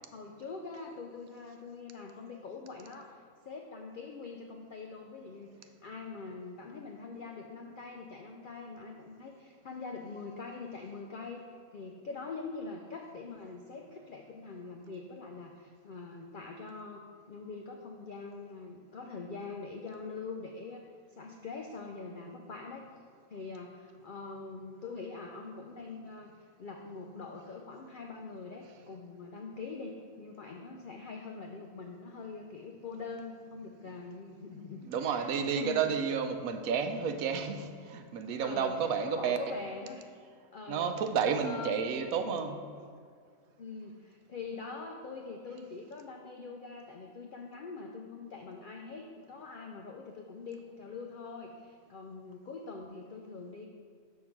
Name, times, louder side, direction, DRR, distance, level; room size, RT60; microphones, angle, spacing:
voice 1, 0.1-20.8 21.1-22.8 23.3-35.8 38.4-40.1 40.5-40.9 41.4-41.9 43.6-53.7, left 4 dB, 75° left, 2 dB, 0.4 m, -44 dB
voice 2, 34.8-39.4 40.7-42.6, right 6 dB, 85° right, 7 dB, 1.0 m, -31 dB
6.3 x 3.8 x 5.8 m, 2.1 s
omnidirectional pair, 1.5 m